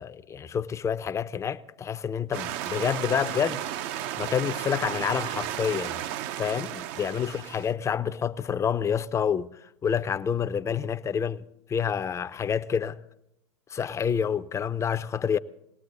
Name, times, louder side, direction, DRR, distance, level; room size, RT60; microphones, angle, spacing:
voice 1, 0.0-3.6 4.2-6.0 6.4-9.5 9.8-11.4 11.7-13.0 13.7-15.4, left 7 dB, 20° left, 0.5 m, -28 dB
sound 1, 2.3-7.7, right 11 dB, 50° right, 0.6 m, -34 dB
20.0 x 18.0 x 4.0 m
hypercardioid pair, 100°, 15 cm